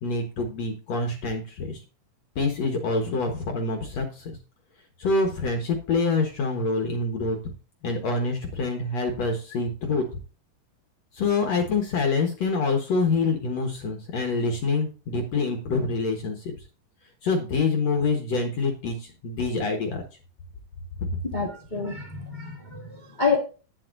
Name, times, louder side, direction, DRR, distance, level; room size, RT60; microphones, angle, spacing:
voice 1, 0.0-1.8 2.4-4.4 5.0-7.4 7.8-10.0 11.1-16.5 17.2-20.0, left 3 dB, 60° left, 4 dB, 2.1 m, -26 dB
voice 2, 21.2-23.4, left 5 dB, 40° left, 1 dB, 0.6 m, -28 dB
11.0 x 9.7 x 2.6 m, 0.34 s
omnidirectional pair, 4.1 m